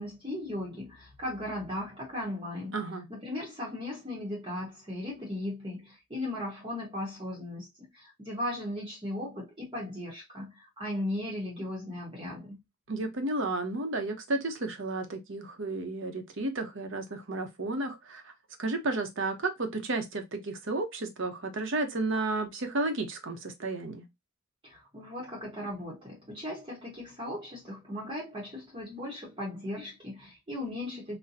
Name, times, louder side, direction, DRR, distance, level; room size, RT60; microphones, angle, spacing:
voice 1, 0.0-2.8 3.1-12.6 24.6-31.2, left 1 dB, 25° right, 0.9 m, -37 dB
voice 2, 2.7-3.1 12.9-18.3 18.6-24.0, right 2 dB, 55° right, 0.8 m, -32 dB
4.1 x 2.2 x 2.6 m
head